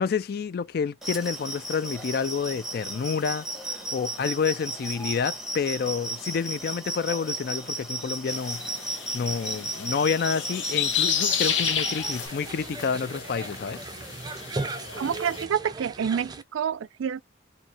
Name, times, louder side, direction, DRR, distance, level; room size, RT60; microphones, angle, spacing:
voice 1, 0.0-8.6 9.1-13.8, left 6 dB, 50° left, 0.3 m, -29 dB
sound 1, 1.0-12.3, right 1 dB, ahead, 0.9 m, -34 dB
sound 2, 8.3-15.4, left 8 dB, 75° left, 0.8 m, -31 dB
sound 3, 11.3-16.4, right 3 dB, 20° right, 0.4 m, -37 dB
voice 2, 15.0-17.2, right 8 dB, 90° right, 0.4 m, -28 dB
2.7 x 2.7 x 4.1 m
head